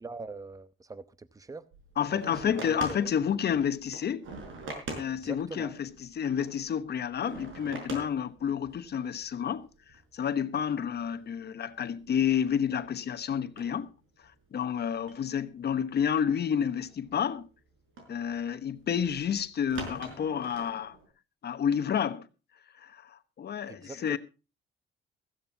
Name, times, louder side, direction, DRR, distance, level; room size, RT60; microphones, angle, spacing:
voice 1, 0.0-1.7 2.1-3.2 5.2-5.7 23.7-24.2, right 3 dB, 15° right, 0.9 m, -43 dB
sound 1, 1.7-8.9 9.2-9.5 9.9-10.0 10.6-11.0 11.5-11.6 12.0-12.5 12.8-13.2 13.6-14.3 15.0-16.0 16.4-17.1 18.0-21.1, right 3 dB, 80° right, 5.5 m, -43 dB
voice 2, 2.0-4.2 4.9-9.7 10.1-13.9 14.5-17.5 18.1-21.0 21.4-22.3 22.8-24.2, left 8 dB, 55° left, 1.2 m, -30 dB
16.5 x 15.0 x 2.8 m
cardioid pair, 90°, 20 cm